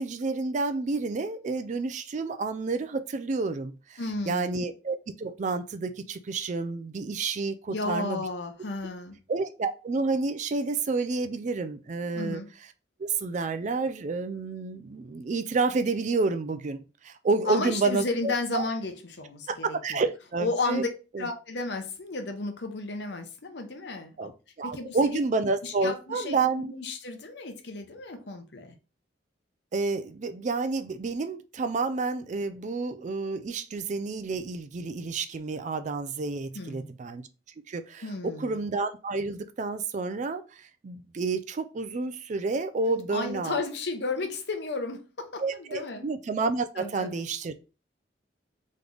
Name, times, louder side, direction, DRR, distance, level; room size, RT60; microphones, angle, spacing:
voice 1, 0.0-4.0 4.3-8.3 9.3-12.4 13.0-18.6 19.5-20.8 21.1-21.3 24.2-24.3 24.6-26.7 29.7-37.3 37.7-43.6 45.4-47.6, right 3 dB, 40° right, 0.4 m, -30 dB
voice 2, 4.0-4.6 7.7-9.2 12.1-12.5 17.5-20.0 20.4-20.9 21.2-24.3 24.6-25.2 25.6-28.7 36.5-36.9 38.0-38.6 43.1-46.1 46.8-47.2, left 3 dB, 65° left, 0.8 m, -33 dB
3.4 x 3.2 x 3.8 m
head